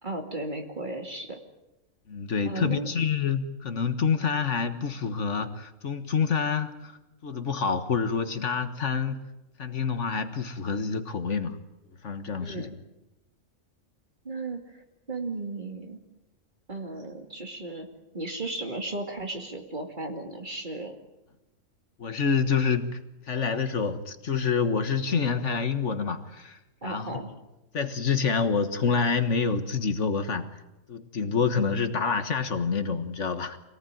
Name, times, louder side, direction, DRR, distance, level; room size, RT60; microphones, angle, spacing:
voice 1, 0.0-1.4 2.5-2.9 12.4-12.8 14.2-14.7 15.1-16.0 16.7-17.9 18.1-21.0 26.8-27.3, right 2 dB, 35° right, 4 dB, 2.7 m, -35 dB
voice 2, 2.1-6.9 7.2-9.2 9.6-11.6 12.0-12.7 22.0-27.2 27.7-30.5 30.9-33.6, left 5 dB, 65° left, 9 dB, 1.7 m, -27 dB
25.5 x 18.5 x 9.1 m, 0.97 s
omnidirectional pair, 1.3 m